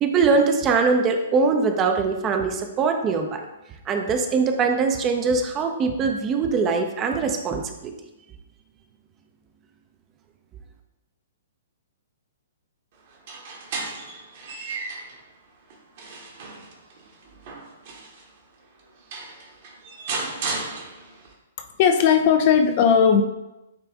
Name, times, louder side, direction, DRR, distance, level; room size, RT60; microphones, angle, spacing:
voice 1, 0.0-3.4 3.9-7.9, right 4 dB, 25° right, 5 dB, 0.7 m, -22 dB
sound 1, 13.1-15.2 15.7-18.3 18.8-18.9 19.1-21.3, right 3 dB, 45° right, 1.4 m, -34 dB
voice 2, 21.8-23.2, left 7 dB, 40° left, 6 dB, 0.6 m, -17 dB
8.9 x 3.4 x 3.6 m, 0.97 s
figure-of-eight pair, 115°, 0 cm